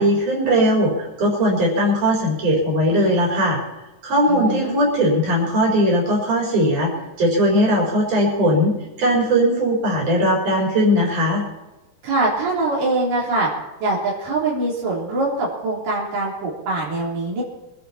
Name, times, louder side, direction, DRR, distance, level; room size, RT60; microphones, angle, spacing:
voice 1, 0.0-3.6 4.0-6.9 7.2-11.4, equal, 70° right, -3 dB, 5.9 m, -19 dB
voice 2, 4.3-4.8 12.0-13.5 13.8-17.4, right 2 dB, 90° right, -5 dB, 5.3 m, -23 dB
24.5 x 12.0 x 4.4 m, 1.0 s
omnidirectional pair, 3.8 m